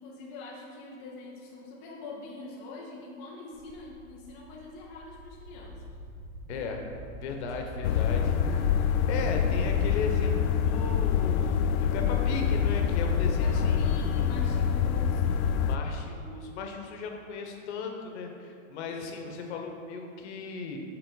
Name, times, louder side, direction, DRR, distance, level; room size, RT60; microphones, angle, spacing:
voice 1, 0.0-5.8 7.5-8.9 13.4-15.6, left 2 dB, 20° left, -3 dB, 0.3 m, -44 dB
sound 1, 3.5-14.6, right 1 dB, 40° right, 1.0 m, -42 dB
voice 2, 6.5-6.8 7.2-8.2 9.1-13.8 15.6-20.8, left 4 dB, 55° left, 3 dB, 1.0 m, -36 dB
sound 2, 7.8-15.8, left 7 dB, 85° left, 0.5 m, -26 dB
6.8 x 3.8 x 4.0 m, 2.5 s
hypercardioid pair, 140°, 41 cm